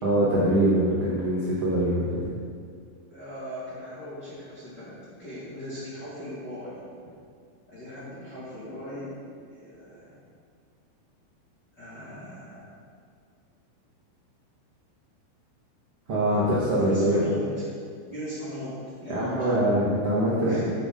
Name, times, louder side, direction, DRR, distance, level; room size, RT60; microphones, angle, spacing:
voice 1, 0.0-2.2 16.1-17.2 19.1-20.7, right 1 dB, 90° right, -8 dB, 1.3 m, -23 dB
voice 2, 3.1-6.9 7.7-9.1 9.5-10.2 11.8-12.7 16.8-17.7 18.1-19.5 20.4-20.7, equal, 40° left, -11 dB, 1.5 m, -38 dB
9.7 x 8.3 x 3.7 m, 2.2 s
omnidirectional pair, 5.3 m